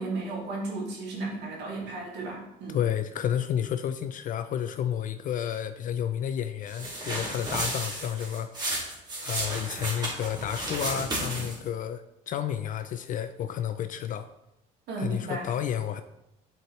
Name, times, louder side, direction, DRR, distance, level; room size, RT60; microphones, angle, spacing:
voice 1, 0.0-2.8 14.9-15.5, right 3 dB, 80° right, -2 dB, 2.2 m, -34 dB
voice 2, 2.7-8.5 9.2-14.3 15.0-16.0, left 9 dB, 50° left, 10 dB, 0.4 m, -31 dB
sound 1, 6.7-11.7, right 1 dB, 25° right, 2.0 m, -33 dB
7.7 x 4.5 x 3.1 m, 0.87 s
cardioid pair, 110°, 17 cm